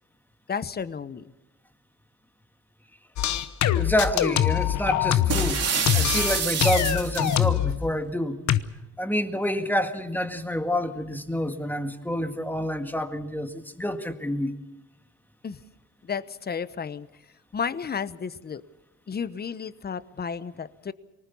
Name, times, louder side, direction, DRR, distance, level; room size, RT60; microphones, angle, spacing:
voice 1, 0.5-1.3 15.4-15.6 16.0-17.1 17.5-18.6 19.1-20.9, left 6 dB, 30° left, 15 dB, 1.0 m, -32 dB
sound 1, 3.2-5.5 5.9-7.8 8.5-8.6, left 12 dB, 70° left, 1.0 m, -23 dB
voice 2, 3.8-5.7 5.9-8.4 9.0-14.5, equal, 5° left, 7 dB, 1.8 m, -28 dB
sound 2, 5.3-7.4, right 6 dB, 55° right, 2.5 m, -27 dB
23.5 x 19.5 x 7.1 m, 0.97 s
cardioid pair, 90°, 30 cm